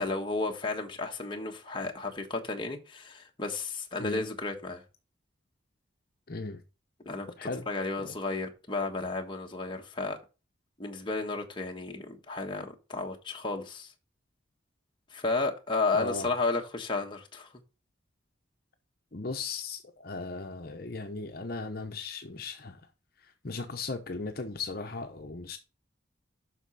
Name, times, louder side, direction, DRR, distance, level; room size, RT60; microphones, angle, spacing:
voice 1, 0.0-4.8 7.0-10.2 10.8-13.9 15.1-17.5, left 3 dB, 25° left, 1.3 m, -33 dB
voice 2, 6.3-6.6 7.4-7.7 8.0-8.1 15.9-16.3 19.1-22.8 23.2-25.6, left 3 dB, 50° left, 0.9 m, -37 dB
8.1 x 5.9 x 4.1 m
head